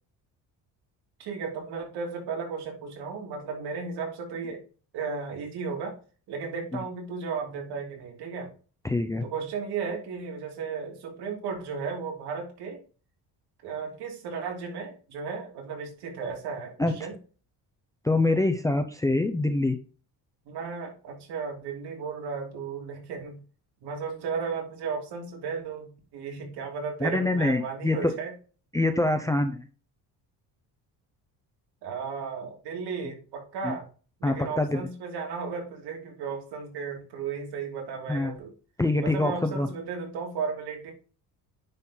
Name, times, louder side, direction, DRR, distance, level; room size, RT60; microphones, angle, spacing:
voice 1, 1.2-4.6 4.9-5.9 6.3-8.5 9.3-12.8 13.6-16.7 17.0-17.1 20.4-23.4 23.8-28.3 31.8-33.9 34.2-38.5 39.0-40.9, right 5 dB, 80° right, 1 dB, 2.9 m, -34 dB
voice 2, 8.8-9.3 16.8-17.0 18.0-19.8 27.0-28.2 28.7-29.7 33.6-33.8 34.2-34.9 38.1-38.4 38.8-39.7, left 2 dB, 10° left, 7 dB, 0.4 m, -25 dB
9.9 x 4.3 x 3.8 m, 0.37 s
cardioid pair, 155°, 40 cm